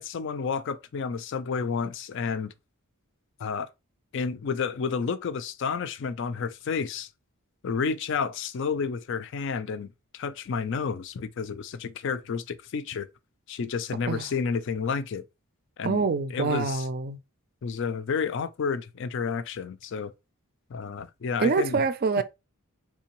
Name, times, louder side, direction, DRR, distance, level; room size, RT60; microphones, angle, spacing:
voice 1, 0.0-2.5 3.4-3.7 4.1-7.1 7.6-13.1 13.5-15.2 15.8-16.0 16.3-16.9 17.6-20.1 20.7-21.8, left 5 dB, 55° left, 0.4 m, -30 dB
voice 2, 15.8-17.2 21.4-22.2, right 4 dB, 45° right, 0.4 m, -25 dB
3.6 x 3.3 x 2.9 m
head